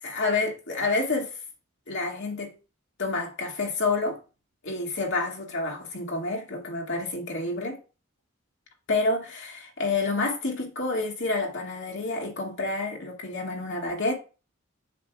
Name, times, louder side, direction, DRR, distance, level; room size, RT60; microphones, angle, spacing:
voice 1, 0.1-1.3 1.9-2.5 3.0-4.2 4.6-7.8 8.9-14.1, left 3 dB, 65° left, 2.3 m, -28 dB
7.7 x 7.5 x 2.4 m
head